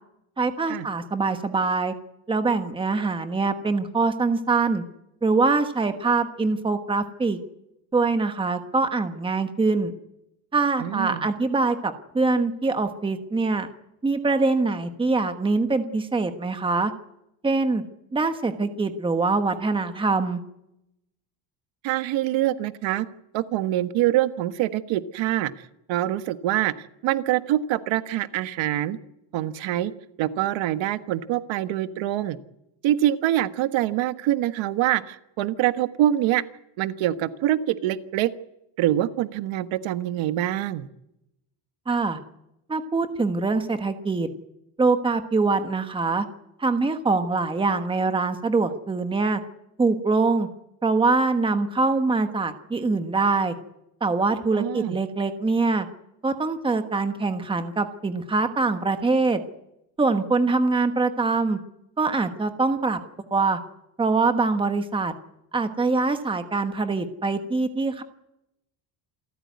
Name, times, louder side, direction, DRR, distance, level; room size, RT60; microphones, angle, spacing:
voice 1, 0.4-1.9 2.3-4.8 5.2-7.4 7.9-9.9 10.5-13.7 14.0-16.9 17.4-17.8 18.1-20.4 41.9-42.2 42.7-44.3 44.8-46.2 46.6-49.4 49.8-50.5 50.8-53.5 54.0-55.9 56.2-59.4 60.0-61.6 62.0-63.0 63.3-63.6 64.0-65.1 65.5-68.0, right 3 dB, 10° right, 8 dB, 1.2 m, -23 dB
voice 2, 10.8-11.3 21.8-23.1 23.3-25.5 25.9-29.0 29.3-29.9 30.2-32.4 32.8-36.4 36.8-38.3 38.8-40.9 54.5-55.0, right 13 dB, 85° right, 11 dB, 1.5 m, -25 dB
28.0 x 14.0 x 9.6 m, 0.85 s
cardioid pair, 180°, 45 cm